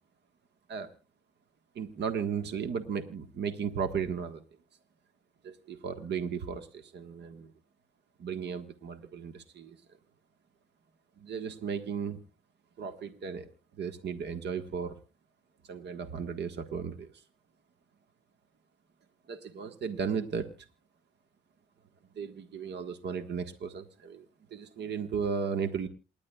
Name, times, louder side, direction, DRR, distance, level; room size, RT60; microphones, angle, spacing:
voice 1, 1.7-4.4 5.4-7.5 8.2-9.8 11.2-12.2 12.8-13.5 13.8-15.0 15.7-17.1 19.3-20.5 22.1-24.2 24.5-25.9, right 6 dB, 60° right, 8 dB, 1.5 m, -35 dB
28.0 x 11.0 x 2.4 m, 0.32 s
cardioid pair, 90°, 20 cm